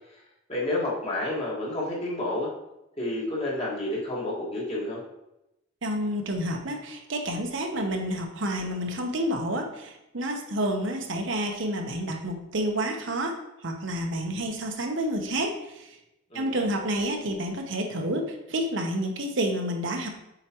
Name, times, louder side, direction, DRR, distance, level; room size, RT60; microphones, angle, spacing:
voice 1, 0.5-2.5 3.0-5.0 16.3-16.6, left 1 dB, 30° left, -5 dB, 1.7 m, -30 dB
voice 2, 5.8-16.0 16.3-20.1, right 1 dB, 65° right, 2 dB, 0.9 m, -29 dB
7.9 x 4.8 x 3.0 m, 0.89 s
head